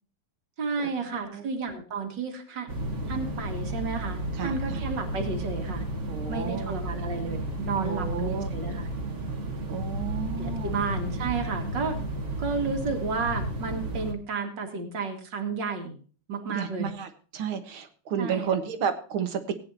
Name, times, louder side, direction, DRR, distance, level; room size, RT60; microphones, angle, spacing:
voice 1, 0.6-2.7 3.1-5.8 6.3-8.9 10.4-12.0 12.4-16.0 16.3-16.9 18.2-18.6, right 4 dB, 60° right, 5 dB, 2.6 m, -32 dB
sound 1, 2.7-14.1, right 1 dB, 35° right, 1.8 m, -32 dB
voice 2, 4.4-4.8 6.1-6.8 7.8-8.5 9.7-10.7 16.5-19.5, right 7 dB, 75° right, 8 dB, 2.2 m, -32 dB
18.0 x 9.8 x 2.8 m, 0.40 s
omnidirectional pair, 2.3 m